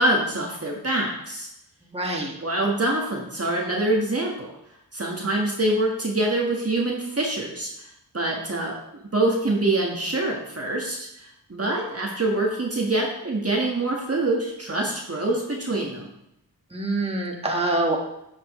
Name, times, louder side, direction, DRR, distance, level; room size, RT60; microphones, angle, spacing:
voice 1, 0.0-1.5 2.4-4.6 4.9-7.9 8.1-16.1, right 2 dB, 35° right, -2 dB, 1.5 m, -25 dB
voice 2, 1.9-2.3 16.7-18.0, right 2 dB, 15° right, -1 dB, 1.7 m, -25 dB
10.5 x 5.9 x 3.1 m, 0.81 s
cardioid pair, 50°, 41 cm